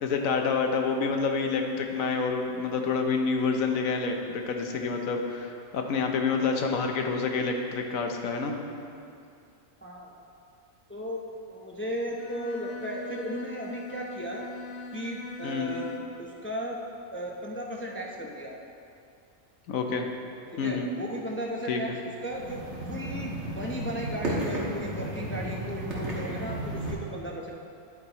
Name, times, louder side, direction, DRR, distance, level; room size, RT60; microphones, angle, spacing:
voice 1, 0.0-8.6 15.4-15.7 19.7-20.1 20.6-20.9 21.7-21.8, left 4 dB, 90° left, 4 dB, 1.2 m, -28 dB
voice 2, 9.8-10.2 10.9-11.2 11.5-14.4 14.9-15.9 16.2-16.8 17.1-18.6 20.5-22.6 22.9-27.5, equal, 15° left, -1 dB, 0.4 m, -35 dB
Bowed string instrument, 12.1-16.3, left 3 dB, 65° left, 1.0 m, -41 dB
sound 1, 22.3-26.9, right 1 dB, 60° right, 1.7 m, -33 dB
10.5 x 8.7 x 2.9 m, 2.5 s
omnidirectional pair, 1.4 m